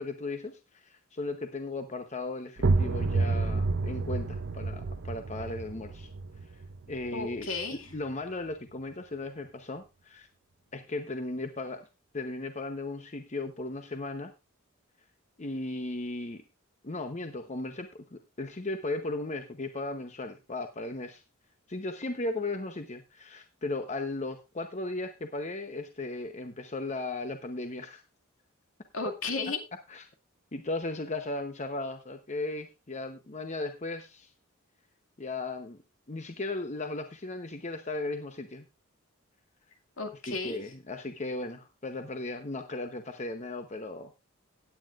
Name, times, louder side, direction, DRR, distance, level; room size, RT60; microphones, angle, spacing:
voice 1, 0.0-6.1 6.9-7.5 7.9-10.3 10.7-11.8 12.1-14.3 15.4-16.4 16.8-21.2 21.7-28.0 29.9-30.0 30.5-34.3 35.2-35.8 36.1-38.6 40.3-44.2, left 2 dB, 35° left, 7 dB, 0.9 m, -36 dB
sound 1, 2.6-8.1, right 3 dB, 55° right, 0.6 m, -30 dB
voice 2, 7.1-7.9 28.9-29.6 40.0-40.6, left 4 dB, 70° left, 5 dB, 2.3 m, -33 dB
16.5 x 9.5 x 2.5 m, 0.26 s
head